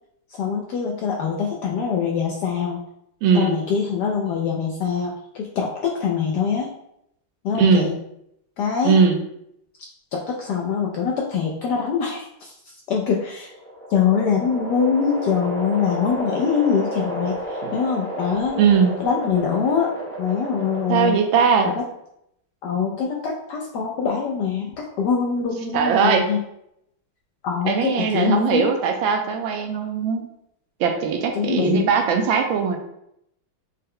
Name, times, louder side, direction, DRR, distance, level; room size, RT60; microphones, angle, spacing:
voice 1, 0.4-2.8 3.3-6.7 7.4-7.9 8.6-8.9 10.1-13.5 13.9-18.6 19.0-19.9 20.2-21.2 21.6-21.8 22.6-26.4 27.4-28.7 31.3-31.9, left 6 dB, 75° left, -1 dB, 1.0 m, -23 dB
voice 2, 3.2-3.5 7.5-7.9 8.8-9.2 17.6-17.7 18.6-18.9 20.9-21.7 25.7-26.2 27.7-30.3 30.8-32.8, right 6 dB, 75° right, 4 dB, 1.3 m, -19 dB
sound 1, 13.4-21.5, equal, 15° left, 0.4 m, -32 dB
5.5 x 2.1 x 3.7 m, 0.76 s
omnidirectional pair, 2.3 m